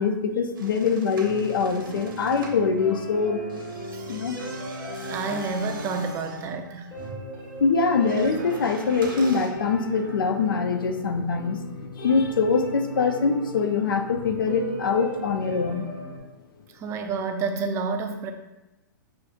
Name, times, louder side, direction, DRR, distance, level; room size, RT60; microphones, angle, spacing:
voice 1, 0.0-3.5 4.1-4.4 7.6-11.7 12.0-15.9, left 5 dB, 80° left, 8 dB, 0.5 m, -23 dB
sound 1, 0.5-2.6 3.4-9.5, right 3 dB, 80° right, 0.8 m, -43 dB
sound 2, 1.2-16.2, equal, 30° left, 1.3 m, -38 dB
voice 2, 5.1-6.9 16.7-18.3, right 4 dB, 25° right, 5 dB, 0.4 m, -29 dB
5.8 x 2.5 x 2.5 m, 0.98 s
hypercardioid pair, 125°, 11 cm